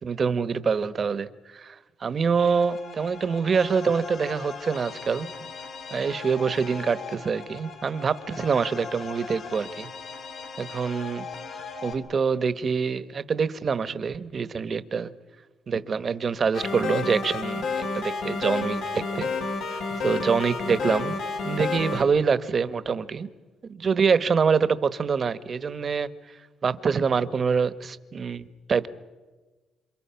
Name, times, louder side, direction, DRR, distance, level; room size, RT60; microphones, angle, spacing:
voice 1, 0.0-5.3 5.9-9.9 10.6-11.3 11.8-15.1 15.7-19.3 19.7-21.2 21.4-23.3 23.7-26.1 26.6-28.9, right 5 dB, 45° right, 13 dB, 1.2 m, -25 dB
sound 1, 2.3-11.9, left 5 dB, 55° left, 4.7 m, -39 dB
sound 2, 16.5-22.0, left 4 dB, 85° left, 5.1 m, -29 dB
28.0 x 26.5 x 5.8 m, 1.3 s
cardioid pair, 90°, 0 cm